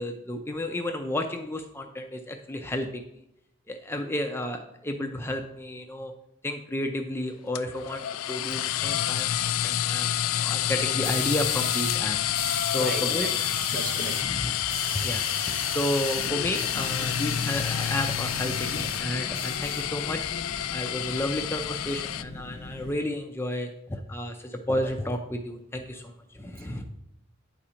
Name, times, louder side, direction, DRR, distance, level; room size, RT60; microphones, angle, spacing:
voice 1, 0.0-3.0 3.7-6.1 6.4-12.2 12.7-13.3 14.2-14.5 14.9-20.2 20.7-26.8, left 1 dB, 10° left, 0.5 m, -32 dB
sound 1, 7.5-22.2, left 12 dB, 80° left, 0.3 m, -29 dB
sound 2, 11.0-12.0 12.3-14.2 14.5-19.0 19.3-20.3, right 2 dB, 60° right, 1.9 m, -38 dB
voice 2, 12.6-14.4 26.4-26.7, right 3 dB, 45° right, 0.8 m, -38 dB
sound 3, 16.1-23.0, left 2 dB, 50° left, 0.7 m, -41 dB
9.7 x 4.3 x 5.0 m
head